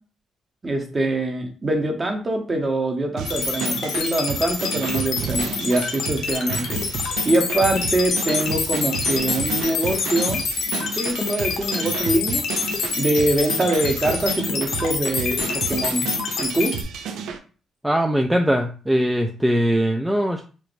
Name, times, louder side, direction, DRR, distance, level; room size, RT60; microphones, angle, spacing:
voice 1, 0.6-6.8 7.2-12.4 13.0-16.1 16.4-16.8, right 2 dB, 30° right, 3 dB, 0.9 m, -24 dB
sound 1, 3.2-17.4, right 7 dB, 80° right, 0.4 m, -31 dB
sound 2, 3.3-16.8, left 5 dB, 75° left, 0.6 m, -26 dB
voice 2, 17.8-20.4, equal, 5° right, 3 dB, 0.4 m, -21 dB
4.6 x 2.0 x 2.6 m, 0.38 s
cardioid pair, 90°, 0 cm